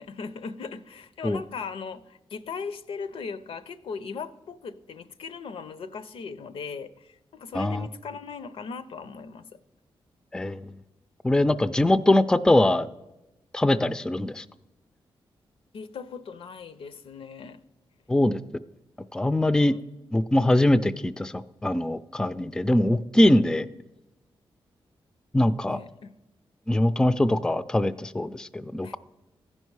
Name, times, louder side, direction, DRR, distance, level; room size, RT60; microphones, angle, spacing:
voice 1, 0.0-9.4 15.7-17.6 19.5-19.8 25.7-26.1 28.8-29.0, left 5 dB, 75° left, 13 dB, 0.5 m, -38 dB
voice 2, 7.5-7.9 10.3-10.7 11.2-12.9 13.5-14.4 18.1-18.4 19.1-19.7 20.1-21.3 21.6-23.7 25.3-25.8 26.7-29.0, left 1 dB, 5° left, 15 dB, 0.3 m, -22 dB
14.5 x 5.4 x 4.7 m, 0.97 s
cardioid pair, 85°, 10 cm